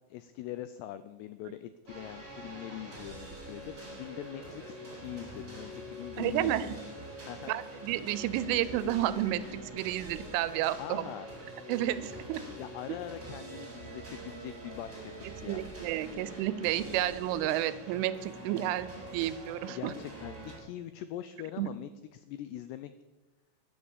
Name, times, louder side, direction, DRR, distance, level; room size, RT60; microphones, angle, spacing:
voice 1, 0.1-6.9 7.3-7.5 10.8-11.3 12.6-15.6 19.7-22.9, left 12 dB, 85° left, 12 dB, 2.4 m, -43 dB
sound 1, 1.9-20.6, right 1 dB, 15° right, 6.7 m, -45 dB
voice 2, 6.2-6.8 7.5-9.4 9.7-11.0 11.7-12.4 15.5-19.9 21.6-21.7, right 13 dB, 90° right, 15 dB, 3.3 m, -31 dB
13.0 x 11.0 x 7.2 m, 1.1 s
omnidirectional pair, 5.5 m